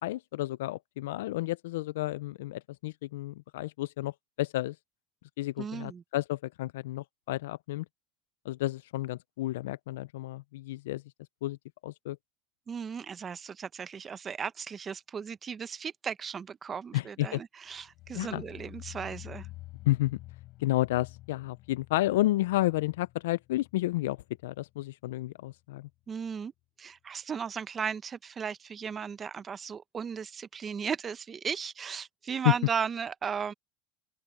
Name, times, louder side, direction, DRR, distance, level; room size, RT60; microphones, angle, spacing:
voice 1, 0.0-4.1 4.4-4.8 5.4-7.8 8.5-11.0 11.4-11.6 11.8-12.2 16.9-17.4 18.1-18.4 19.9-20.2 20.6-24.2 24.4-25.9 32.4-32.5, left 17 dB, 85° left, 0.3 m, -31 dB
voice 2, 5.6-6.0 12.7-19.5 26.1-26.5 26.8-33.5, right 6 dB, 25° right, 0.8 m, -36 dB
sound 1, 17.7-24.8 25.1-25.5 25.9-26.0, left 18 dB, 50° left, 5.1 m, -49 dB
open air
supercardioid pair, 130°, 0 cm